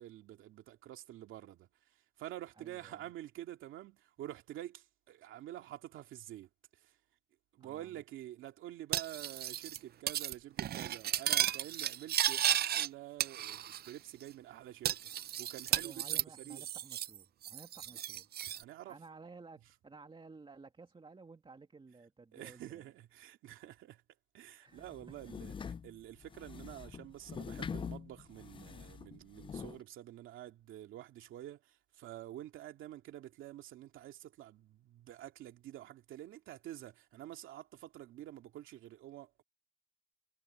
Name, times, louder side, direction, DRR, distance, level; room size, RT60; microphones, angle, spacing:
voice 1, 0.0-1.7 2.2-6.5 6.8-6.9 7.5-15.1 15.4-16.6 18.4-19.0 22.3-24.0 24.3-25.5 25.8-39.4, right 13 dB, 85° right, 2.5 m, -48 dB
voice 2, 2.6-3.1 7.6-8.0 15.7-18.3 18.8-22.9 24.6-25.4, right 4 dB, 25° right, 2.4 m, -55 dB
Cutlery silverware, 8.9-9.8 10.1-10.3 10.6-12.9 13.2-13.9 14.2-14.3 14.9-17.2 17.4-18.6, right 11 dB, 50° right, 0.5 m, -34 dB
sound 1, 24.8-29.8, left 6 dB, 25° left, 0.3 m, -44 dB
cardioid pair, 90°, 20 cm